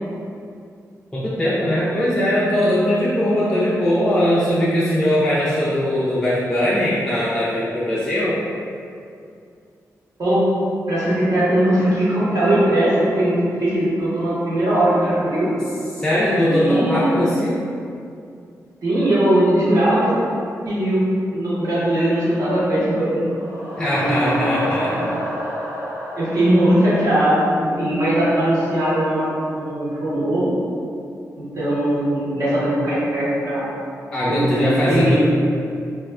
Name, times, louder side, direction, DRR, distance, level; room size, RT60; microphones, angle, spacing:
voice 1, 1.1-8.4 15.9-17.6 23.8-25.2 34.1-35.2, left 1 dB, 10° left, -8 dB, 0.3 m, -20 dB
voice 2, 10.9-15.5 16.4-17.2 18.8-20.1 20.7-21.0 21.3-23.2 23.9-25.1 26.1-30.4 31.3-33.6 34.3-35.2, right 1 dB, 70° right, -10 dB, 1.1 m, -20 dB
sound 1, 23.0-27.8, equal, 45° right, 0.8 m, -30 dB
3.4 x 2.3 x 2.3 m, 2.4 s
wide cardioid pair, 150°, 6 cm